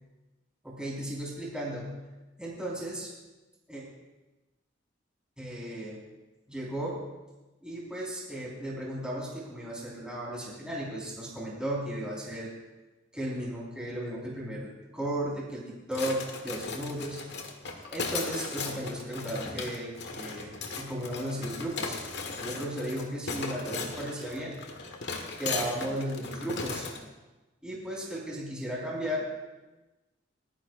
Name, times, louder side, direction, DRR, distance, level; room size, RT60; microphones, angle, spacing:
voice 1, 0.6-1.9 2.4-3.1 3.7-3.8 5.4-6.0 6.5-7.0 7.6-12.5 13.1-17.2 17.9-22.0 22.4-24.5 25.4-26.8 27.6-29.2, right 1 dB, 5° right, -6 dB, 4.8 m, -35 dB
sound 1, 15.9-27.0, left 4 dB, 65° left, 1.6 m, -37 dB
29.5 x 9.8 x 2.6 m, 1.1 s
head